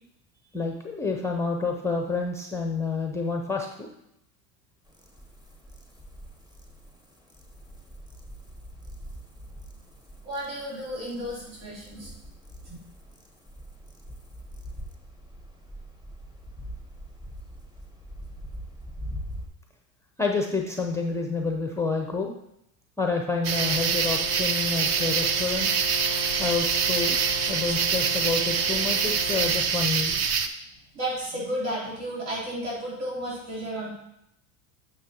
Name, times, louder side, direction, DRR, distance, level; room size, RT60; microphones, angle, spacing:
voice 1, 0.5-3.9 20.2-22.3 23.0-25.7 26.4-27.2 27.5-30.2, left 4 dB, 5° left, 3 dB, 0.5 m, -28 dB
sound 1, 4.9-19.5, equal, 10° right, 1.1 m, -43 dB
voice 2, 10.2-12.1 12.6-12.8 30.9-33.9, equal, 70° right, -6 dB, 3.3 m, -33 dB
Brass instrument, 23.3-29.6, left 1 dB, 85° right, 1.6 m, -37 dB
sound 2, 23.4-30.5, right 6 dB, 40° right, 0.6 m, -25 dB
9.0 x 6.5 x 2.9 m, 0.79 s
supercardioid pair, 115°, 42 cm